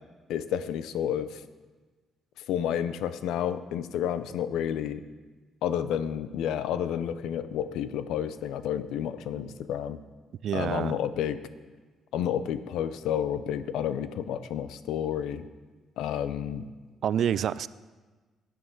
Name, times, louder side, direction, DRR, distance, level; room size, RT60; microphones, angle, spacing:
voice 1, 0.3-1.4 2.5-5.0 5.6-10.0 10.5-11.4 12.1-15.5 16.0-16.7, left 9 dB, 90° left, 13 dB, 0.5 m, -30 dB
voice 2, 10.4-11.0 17.0-17.7, right 9 dB, 65° right, 17 dB, 0.3 m, -27 dB
14.5 x 9.4 x 3.9 m, 1.3 s
cardioid pair, 90°, 0 cm